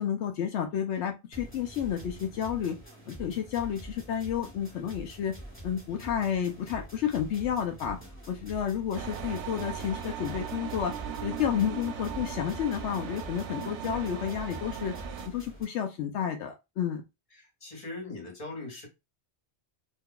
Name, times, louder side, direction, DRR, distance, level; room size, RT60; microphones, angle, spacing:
voice 1, 0.0-2.8 3.1-5.3 5.6-8.0 8.3-10.9 11.2-14.9 15.2-17.0, left 9 dB, 75° left, 0.9 m, -31 dB
sound 1, 1.3-15.6, right 1 dB, 10° left, 1.1 m, -45 dB
sound 2, 8.9-15.3, right 8 dB, 80° right, 0.9 m, -38 dB
voice 2, 17.4-18.9, left 2 dB, 30° left, 1.1 m, -40 dB
2.7 x 2.3 x 3.6 m
omnidirectional pair, 1.2 m